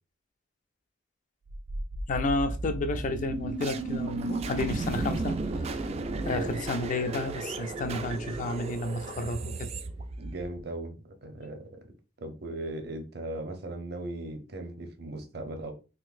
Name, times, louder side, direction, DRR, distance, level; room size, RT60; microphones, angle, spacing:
sound 1, 1.5-10.6, right 3 dB, 35° right, 0.3 m, -34 dB
voice 1, 2.1-5.4 6.2-9.7, left 2 dB, 45° left, 0.4 m, -31 dB
voice 2, 10.2-11.9 12.2-15.7, right 2 dB, 60° right, 0.7 m, -38 dB
3.8 x 2.6 x 2.5 m
head